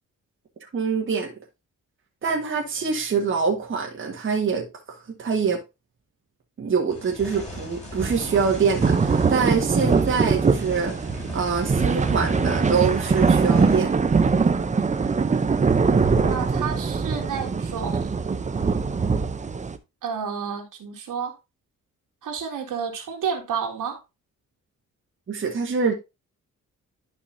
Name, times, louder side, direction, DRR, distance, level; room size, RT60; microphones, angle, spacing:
voice 1, 0.7-1.3 2.2-4.6 5.2-5.6 6.6-10.9 11.3-13.9 25.3-25.9, right 5 dB, 40° right, 1.7 m, -24 dB
sound 1, 6.9-13.8, equal, 20° left, 3.5 m, -36 dB
sound 2, 8.0-19.8, right 5 dB, 25° right, 0.7 m, -22 dB
voice 2, 16.2-18.1 20.0-21.4 22.2-24.0, right 6 dB, 80° right, 2.7 m, -30 dB
11.5 x 5.5 x 2.7 m
wide cardioid pair, 155°, 32 cm